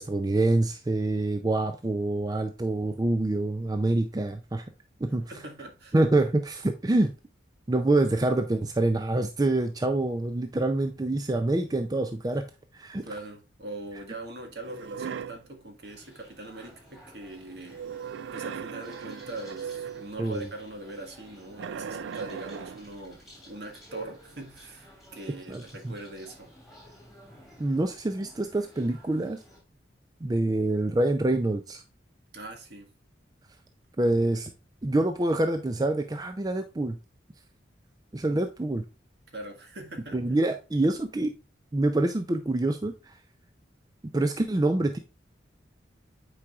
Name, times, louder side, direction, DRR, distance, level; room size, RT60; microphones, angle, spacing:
voice 1, 0.0-4.7 5.0-5.3 5.9-7.1 7.7-12.4 12.7-13.0 20.2-20.5 25.5-25.9 27.6-29.4 30.2-31.8 34.0-34.5 34.8-37.0 38.1-38.8 40.1-41.3 41.7-43.1 44.1-45.0, right 2 dB, 20° right, 0.4 m, -26 dB
voice 2, 5.3-5.9 13.0-17.8 18.3-26.5 32.3-32.9 39.3-40.2, right 2 dB, 60° right, 1.5 m, -42 dB
sound 1, 14.6-15.5 17.7-20.2 21.6-22.9, right 7 dB, 85° right, 0.4 m, -38 dB
sound 2, 15.8-29.6, right 1 dB, ahead, 2.9 m, -52 dB
8.8 x 4.8 x 2.4 m
head